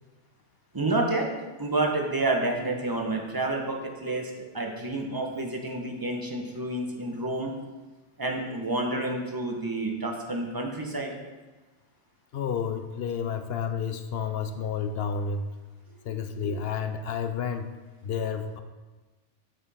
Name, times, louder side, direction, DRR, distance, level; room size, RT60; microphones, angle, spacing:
voice 1, 0.7-7.5 8.2-11.2 16.4-16.5, right 2 dB, 20° right, 1 dB, 1.0 m, -29 dB
voice 2, 12.3-15.5 16.0-17.7 18.0-18.6, left 6 dB, 65° left, 8 dB, 0.7 m, -30 dB
7.0 x 6.4 x 4.2 m, 1.2 s
omnidirectional pair, 1.2 m